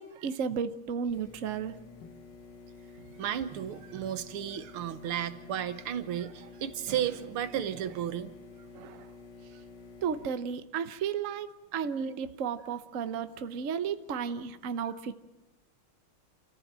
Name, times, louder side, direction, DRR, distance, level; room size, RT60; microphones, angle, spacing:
voice 1, 0.0-1.7 8.7-9.1 10.0-15.1, right 7 dB, 50° right, 10 dB, 1.1 m, -33 dB
sound 1, 1.1-10.3, left 4 dB, 55° left, 2.2 m, -50 dB
voice 2, 3.2-8.3, right 10 dB, 80° right, 12 dB, 1.9 m, -33 dB
28.0 x 14.5 x 7.5 m, 1.0 s
omnidirectional pair, 2.4 m